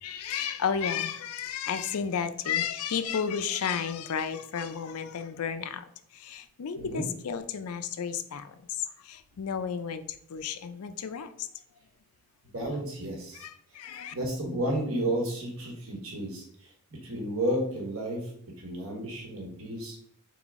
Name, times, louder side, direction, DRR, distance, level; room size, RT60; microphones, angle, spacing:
voice 1, 0.0-5.8 6.2-8.5 9.1-10.0 10.3-11.5 13.4-14.1, left 7 dB, 80° left, 11 dB, 0.4 m, -32 dB
voice 2, 6.7-7.1 12.5-13.5 14.1-16.5 17.0-18.3 18.6-20.1, right 1 dB, 75° right, 0 dB, 1.4 m, -32 dB
3.9 x 3.8 x 3.6 m, 0.64 s
head